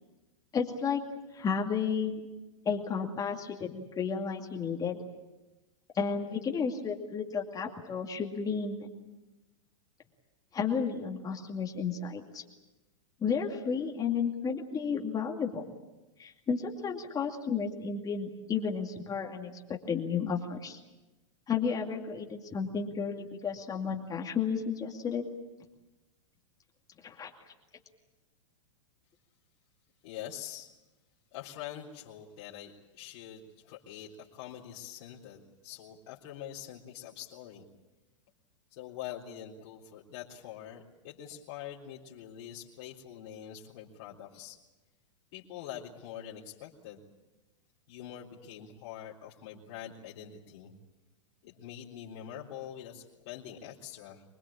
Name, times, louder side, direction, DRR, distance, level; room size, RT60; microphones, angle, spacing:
voice 1, 0.5-1.0 1.3-2.2 2.6-5.0 5.9-8.9 10.5-12.4 13.2-15.6 16.2-20.8 21.5-25.2 27.0-27.5, left 6 dB, 25° left, 1 dB, 2.4 m, -32 dB
voice 2, 30.0-30.7 31.3-37.6 38.7-44.6 45.3-47.0 47.9-50.8 51.4-54.2, left 10 dB, 60° left, -6 dB, 3.8 m, -45 dB
25.5 x 21.0 x 8.7 m, 1.1 s
hypercardioid pair, 115°, 16 cm